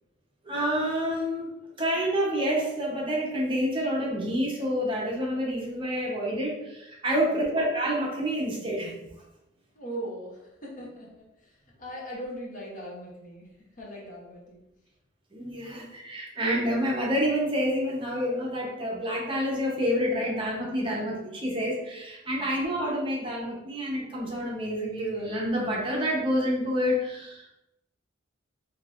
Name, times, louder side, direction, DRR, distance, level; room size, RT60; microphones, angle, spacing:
voice 1, 0.4-1.5 1.8-8.9 15.3-27.5, equal, 25° right, -3 dB, 0.7 m, -28 dB
voice 2, 9.7-14.6 22.4-22.6, right 1 dB, 45° left, -4 dB, 0.9 m, -40 dB
3.8 x 2.7 x 2.4 m, 0.90 s
head